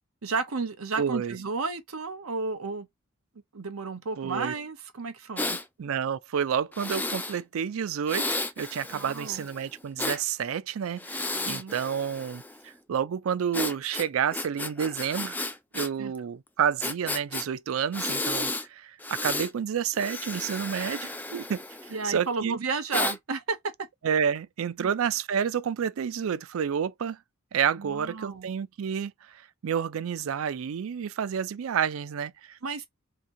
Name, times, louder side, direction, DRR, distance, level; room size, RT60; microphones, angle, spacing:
voice 1, 0.2-2.9 3.5-5.6 8.9-9.4 11.5-11.8 16.0-16.1 21.9-23.7 24.8-24.9 27.8-28.5 32.6-32.9, right 4 dB, 90° right, 0.8 m, -32 dB
voice 2, 1.0-1.4 4.2-4.5 5.8-8.3 8.6-15.4 15.7-21.6 22.0-22.6 24.0-27.2 27.5-32.6, right 7 dB, 70° right, 0.4 m, -29 dB
Breathing, 5.4-5.6 6.7-7.4 8.1-10.2 11.0-12.6 13.5-15.9 16.2-16.3 16.8-17.5 17.9-18.7 19.0-19.5 19.9-22.1 22.9-23.2, left 2 dB, 10° left, 0.3 m, -33 dB
2.9 x 2.6 x 3.7 m
head